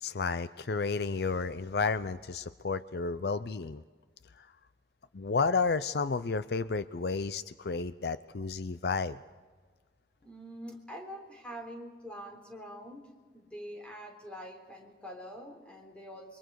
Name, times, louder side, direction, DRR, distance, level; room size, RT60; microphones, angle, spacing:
voice 1, 0.0-3.8 4.4-4.5 5.1-9.2, left 4 dB, 65° left, 14 dB, 0.5 m, -31 dB
voice 2, 10.2-16.4, equal, 5° left, 0 dB, 3.7 m, -45 dB
29.5 x 23.5 x 4.7 m, 1.5 s
head